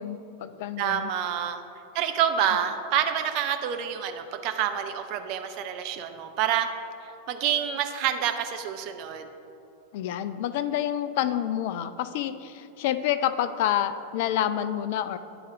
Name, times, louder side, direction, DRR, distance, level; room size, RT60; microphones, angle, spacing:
voice 1, 0.0-1.1 9.9-15.2, left 11 dB, 50° left, 12 dB, 0.3 m, -28 dB
voice 2, 0.8-1.6 1.9-6.7 7.0-9.3, right 9 dB, 45° right, 7 dB, 0.5 m, -28 dB
9.9 x 3.9 x 5.0 m, 2.8 s
figure-of-eight pair, 90°, 0 cm